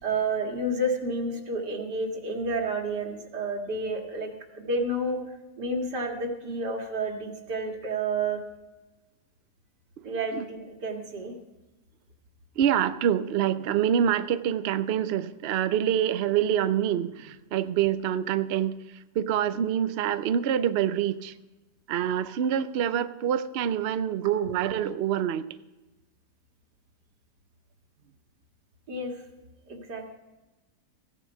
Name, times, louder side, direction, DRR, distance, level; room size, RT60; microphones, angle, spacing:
voice 1, 0.0-5.2 5.6-8.4 10.0-11.3 28.9-29.1 29.7-30.1, right 2 dB, 90° right, 2 dB, 2.5 m, -30 dB
voice 2, 12.6-18.7 19.1-21.3 21.9-25.5, right 9 dB, 65° right, 12 dB, 0.6 m, -26 dB
15.0 x 10.0 x 5.7 m, 1.1 s
omnidirectional pair, 1.7 m